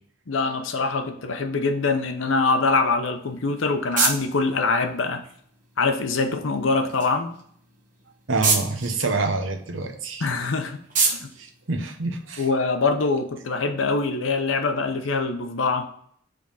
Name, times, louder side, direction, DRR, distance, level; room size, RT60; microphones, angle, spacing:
voice 1, 0.3-5.2 5.8-7.4 10.2-10.8 11.0-11.3 12.4-15.9, left 3 dB, 85° left, 6 dB, 0.7 m, -24 dB
sound 1, 3.2-12.6, right 4 dB, 40° right, 1.1 m, -31 dB
voice 2, 8.3-10.3 11.4-12.5, right 3 dB, 80° right, 5 dB, 0.9 m, -27 dB
5.1 x 3.5 x 5.5 m, 0.62 s
head